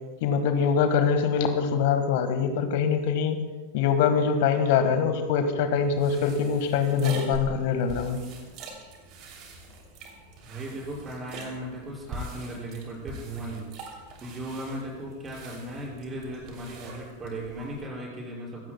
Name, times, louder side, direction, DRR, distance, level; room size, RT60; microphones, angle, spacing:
voice 1, 0.2-3.4 3.7-8.2, left 6 dB, 50° left, 8 dB, 1.5 m, -24 dB
sound 1, 5.8-17.8, right 3 dB, 40° right, 2.9 m, -43 dB
voice 2, 10.4-18.6, right 1 dB, 20° right, -4 dB, 5.7 m, -37 dB
25.0 x 15.5 x 2.3 m, 1.3 s
figure-of-eight pair, 90°, 0 cm